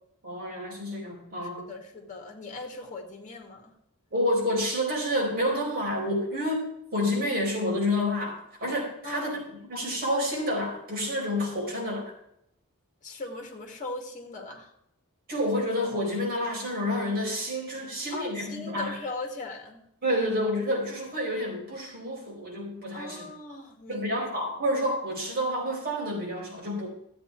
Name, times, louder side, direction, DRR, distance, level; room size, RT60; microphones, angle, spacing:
voice 1, 0.2-1.7 4.1-9.4 9.7-12.1 15.3-19.0 20.0-23.3 23.9-26.9, left 1 dB, 45° right, -2 dB, 4.6 m, -29 dB
voice 2, 1.4-3.7 9.0-9.4 13.0-14.7 18.1-19.8 22.9-24.1, left 2 dB, 35° left, 3 dB, 2.1 m, -39 dB
13.0 x 8.7 x 4.6 m, 0.77 s
head